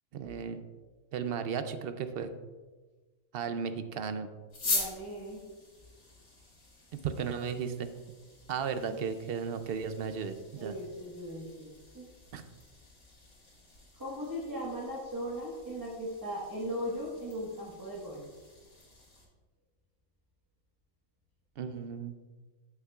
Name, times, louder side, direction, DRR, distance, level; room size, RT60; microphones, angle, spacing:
voice 1, 0.1-0.6 1.1-2.4 3.3-4.3 6.9-7.9 8.5-10.7 12.3-12.4 21.6-22.1, right 6 dB, 60° right, 10 dB, 0.7 m, -35 dB
sound 1, 4.5-19.2, left 3 dB, 85° left, 2.4 m, -43 dB
voice 2, 4.6-5.4 8.9-9.0 10.6-12.1 14.0-18.2, equal, 15° right, -7 dB, 1.4 m, -38 dB
13.5 x 5.8 x 2.4 m, 1.3 s
omnidirectional pair, 1.4 m